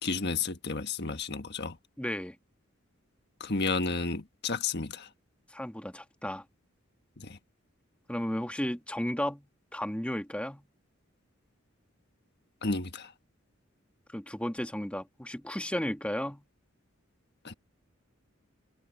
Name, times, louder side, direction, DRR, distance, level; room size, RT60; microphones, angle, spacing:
voice 1, 0.0-1.8 3.4-5.1 7.2-7.4 12.6-13.1 17.4-17.5, left 4 dB, 55° left, 1.5 m, -32 dB
voice 2, 2.0-2.4 5.5-6.4 8.1-9.5 9.7-10.6 14.1-16.4, equal, 5° left, 1.5 m, -34 dB
head